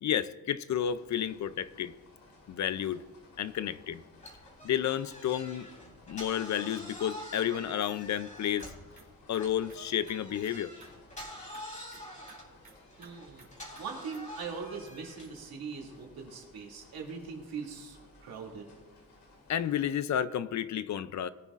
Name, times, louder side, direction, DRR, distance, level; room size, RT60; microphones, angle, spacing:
voice 1, 0.0-1.9 2.5-3.0 3.4-4.0 4.6-5.7 6.1-8.7 9.3-10.7 19.5-21.3, left 10 dB, 50° left, 15 dB, 0.5 m, -31 dB
sound 1, 0.7-19.9, left 2 dB, 75° left, 2.8 m, -59 dB
sound 2, 4.2-8.9 9.4-15.4, left 1 dB, 20° left, 3.6 m, -47 dB
sound 3, 8.6-8.7 9.0-9.1 9.3-10.2 10.4-10.5 10.8-10.9 11.2-11.3 11.5-11.6 11.9-12.0 12.3-12.4 12.6-13.1 13.4-13.5 13.8-13.9 14.1-14.2, right 3 dB, 25° right, 2.8 m, -53 dB
voice 2, 13.0-13.5 13.8-18.7, right 5 dB, 85° right, -1 dB, 2.5 m, -41 dB
20.0 x 9.3 x 2.5 m, 1.3 s
wide cardioid pair, 140°, 36 cm